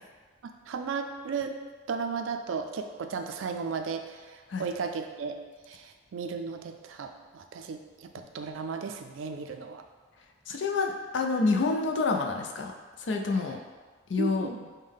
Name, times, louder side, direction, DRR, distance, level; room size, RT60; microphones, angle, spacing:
voice 1, 0.7-1.6 1.9-5.4 5.7-8.1 8.3-9.9 14.2-14.7, right 5 dB, 80° right, 6 dB, 0.4 m, -35 dB
voice 2, 10.5-12.7 13.0-13.6 14.1-14.5, left 3 dB, 65° left, 2 dB, 0.4 m, -27 dB
5.4 x 2.1 x 3.5 m, 1.4 s
head